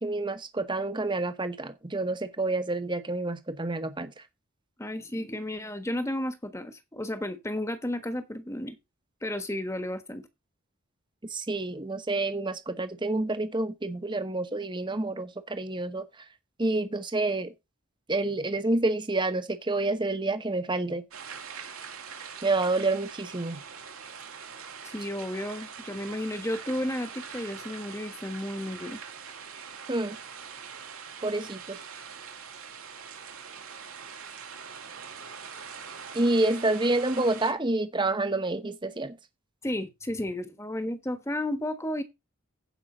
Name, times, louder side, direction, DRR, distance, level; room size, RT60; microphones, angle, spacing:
voice 1, 0.0-4.1 11.3-16.0 16.6-17.5 18.1-21.0 22.4-23.6 29.9-30.2 31.2-31.8 36.1-39.2, right 2 dB, 20° right, 1.0 m, -28 dB
voice 2, 4.8-8.8 9.2-10.3 24.9-29.0 39.6-42.0, left 1 dB, 15° left, 1.2 m, -33 dB
sound 1, 21.1-37.5, right 6 dB, 80° right, 2.0 m, -43 dB
15.5 x 5.4 x 3.9 m
head